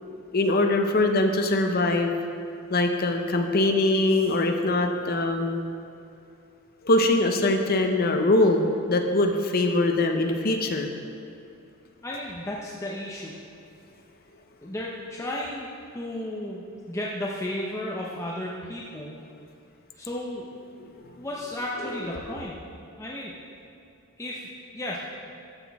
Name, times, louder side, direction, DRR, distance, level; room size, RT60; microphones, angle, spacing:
voice 1, 0.3-2.1 2.7-5.6 6.8-10.9 20.8-21.2 22.3-22.4, left 2 dB, 45° left, 4 dB, 0.8 m, -23 dB
voice 2, 12.0-13.4 14.6-15.7 15.9-19.2 19.9-20.4 21.2-22.5 23.0-23.3 24.2-24.4 24.7-25.0, left 1 dB, 15° left, -5 dB, 0.7 m, -33 dB
13.5 x 6.1 x 3.5 m, 2.6 s
head